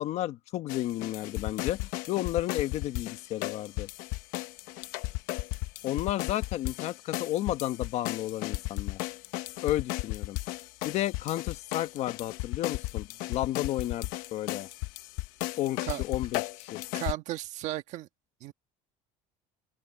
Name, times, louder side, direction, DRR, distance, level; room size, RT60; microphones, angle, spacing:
voice 1, 0.0-3.9 5.8-9.0 9.6-10.4 10.8-14.7 15.6-16.8, left 14 dB, 45° left, 1.2 m, -32 dB
sound 1, 0.7-17.1, left 19 dB, 65° left, 1.0 m, -35 dB
voice 2, 16.9-18.1 18.4-18.5, right 15 dB, 50° right, 1.5 m, -34 dB
open air
cardioid pair, 160°, 15 cm